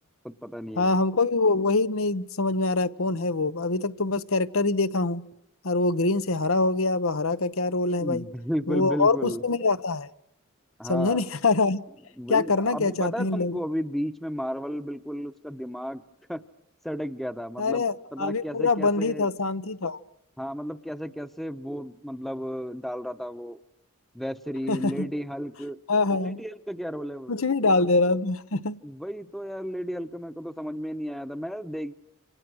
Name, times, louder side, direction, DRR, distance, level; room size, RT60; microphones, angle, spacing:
voice 1, 0.2-0.9 8.0-9.4 10.8-11.2 12.1-16.0 16.3-16.4 16.8-17.9 18.1-19.3 20.4-23.6 24.1-25.8 26.1-27.3 28.8-31.9, equal, ahead, 0.9 m, -33 dB
voice 2, 0.8-5.2 5.6-8.2 8.7-10.1 10.9-11.8 12.3-13.6 17.6-20.0 24.7-25.1 25.9-26.4 27.3-28.8, left 3 dB, 75° left, 0.9 m, -24 dB
29.0 x 27.0 x 6.3 m
head